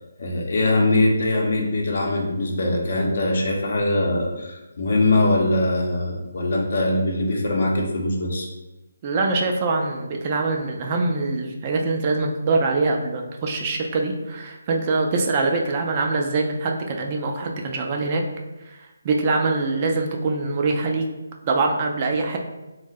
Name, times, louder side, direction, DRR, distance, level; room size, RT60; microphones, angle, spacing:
voice 1, 0.2-8.5, left 2 dB, 55° left, 0 dB, 0.7 m, -22 dB
voice 2, 9.0-18.2 18.7-18.8 19.0-21.1 21.5-22.4, right 3 dB, 30° right, 2 dB, 0.3 m, -23 dB
2.7 x 2.1 x 3.6 m, 1.0 s
hypercardioid pair, 165°, 0 cm